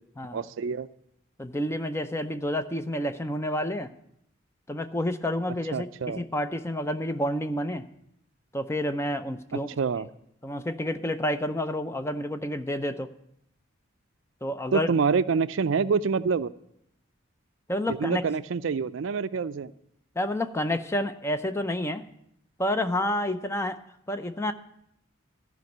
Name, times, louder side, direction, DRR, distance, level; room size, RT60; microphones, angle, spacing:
voice 1, 0.3-0.9 5.7-6.2 9.8-10.1 14.7-16.5 17.9-19.7, right 5 dB, 75° right, 14 dB, 0.4 m, -26 dB
voice 2, 1.4-3.9 4.7-7.8 8.5-9.7 10.4-13.1 14.4-14.9 17.7-18.2 20.2-22.0 22.6-23.8 24.1-24.5, left 1 dB, 15° left, 9 dB, 0.5 m, -29 dB
13.5 x 5.2 x 7.9 m, 0.75 s
head